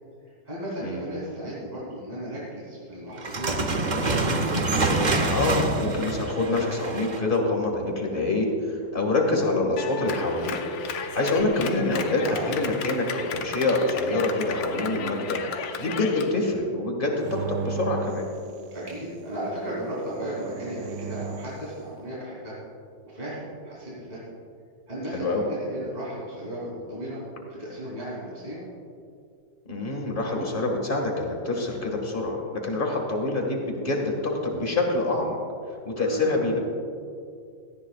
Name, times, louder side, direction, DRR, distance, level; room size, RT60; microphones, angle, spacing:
voice 1, 0.2-4.2 12.2-12.5 18.7-22.6 23.0-24.2 24.9-27.2 27.5-28.6 35.9-36.5, right 1 dB, 20° right, -8 dB, 3.2 m, -35 dB
sound 1, 3.2-7.4, right 2 dB, 60° right, 0.4 m, -26 dB
voice 2, 5.3-10.6 11.1-18.3 25.1-25.4 29.7-35.4 35.8-36.6, left 2 dB, 25° left, 1 dB, 1.9 m, -26 dB
Clapping, 9.8-16.3, left 6 dB, 80° left, 1.6 m, -34 dB
sound 2, 17.2-19.2 20.2-21.7, right 5 dB, 75° right, 1.3 m, -35 dB
18.0 x 14.0 x 2.4 m, 2.4 s
omnidirectional pair, 2.1 m